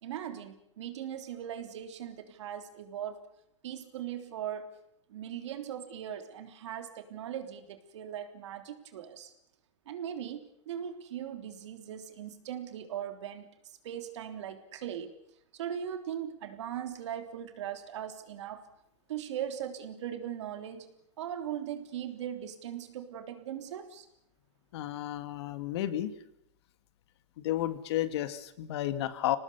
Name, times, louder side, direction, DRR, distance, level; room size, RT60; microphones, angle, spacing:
voice 1, 0.0-3.3 3.6-4.7 5.1-9.3 9.8-15.1 15.5-18.6 19.1-20.9 21.2-24.1, right 9 dB, 70° right, 8 dB, 3.4 m, -39 dB
voice 2, 24.7-26.1 27.4-29.4, left 13 dB, 60° left, 12 dB, 2.1 m, -32 dB
24.5 x 19.0 x 6.9 m, 0.78 s
hypercardioid pair, 140°, 15 cm